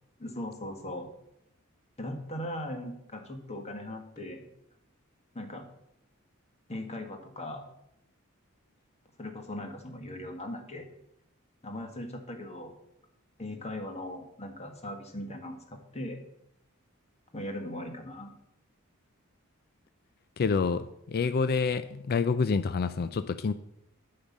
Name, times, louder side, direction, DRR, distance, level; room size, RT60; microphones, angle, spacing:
voice 1, 0.2-1.1 2.0-4.5 5.3-5.6 6.7-7.6 9.2-10.9 11.6-12.7 13.4-16.2 17.3-18.4, left 1 dB, 30° left, 4 dB, 1.6 m, -39 dB
voice 2, 20.4-23.5, left 5 dB, 45° left, 12 dB, 0.4 m, -28 dB
8.5 x 5.7 x 7.3 m, 0.78 s
head